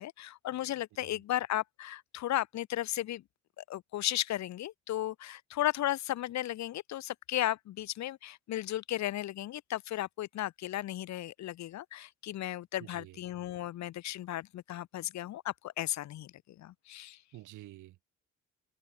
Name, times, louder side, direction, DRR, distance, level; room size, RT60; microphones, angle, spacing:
voice 1, 0.0-3.2 3.6-17.2, left 13 dB, 65° left, 0.7 m, -35 dB
voice 2, 12.8-13.2 17.3-18.0, right 16 dB, 85° right, 1.7 m, -49 dB
cardioid pair, 90°, 30 cm